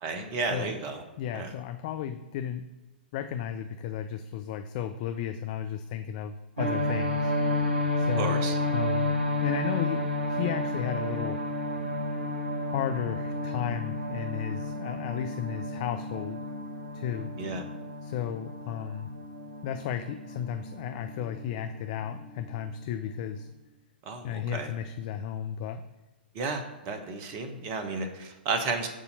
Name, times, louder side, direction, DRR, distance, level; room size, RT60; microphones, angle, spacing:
voice 1, 0.0-1.0 1.3-1.5 8.2-8.6 17.4-17.7 24.0-24.7 26.3-28.9, right 4 dB, 35° right, 6 dB, 1.0 m, -33 dB
voice 2, 1.2-2.7 3.1-7.3 8.0-8.4 8.7-9.2 9.4-11.4 12.7-16.4 16.9-17.3 18.0-19.1 19.6-23.5 24.2-25.8, left 9 dB, 40° left, 8 dB, 0.4 m, -34 dB
sound 1, 6.6-23.4, left 1 dB, 80° right, 1.8 m, -32 dB
8.3 x 2.8 x 5.4 m, 1.1 s
figure-of-eight pair, 115°, 6 cm